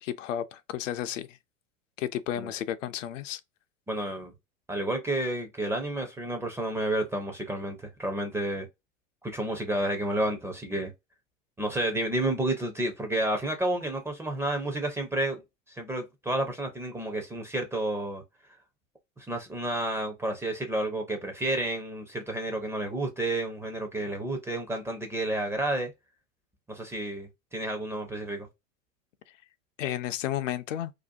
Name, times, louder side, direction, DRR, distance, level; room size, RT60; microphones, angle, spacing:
voice 1, 0.0-1.4 2.0-3.4 29.8-30.9, left 11 dB, 70° left, 0.5 m, -32 dB
voice 2, 3.9-4.3 4.7-8.7 9.2-10.9 11.6-15.4 15.7-18.2 19.2-25.9 26.7-28.5, right 1 dB, 5° right, 0.4 m, -30 dB
2.6 x 2.1 x 2.4 m
hypercardioid pair, 95°, 39 cm